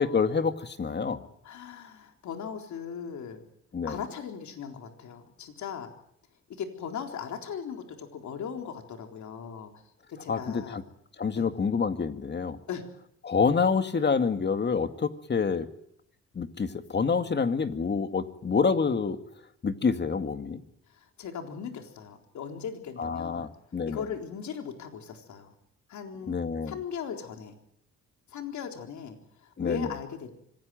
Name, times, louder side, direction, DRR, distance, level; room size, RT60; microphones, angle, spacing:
voice 1, 0.0-1.2 3.7-4.0 10.3-10.8 11.2-12.6 13.3-15.7 16.4-19.2 19.6-20.6 23.0-24.0 26.3-26.7 29.6-29.9, left 5 dB, 35° left, 9 dB, 2.1 m, -27 dB
voice 2, 1.4-3.4 3.8-5.9 6.5-9.7 10.1-10.8 11.4-11.5 12.7-12.9 20.9-23.5 23.8-25.5 25.9-27.5 28.3-30.3, left 7 dB, 70° left, 4 dB, 4.0 m, -38 dB
25.5 x 18.5 x 9.3 m, 0.74 s
cardioid pair, 90°, 30 cm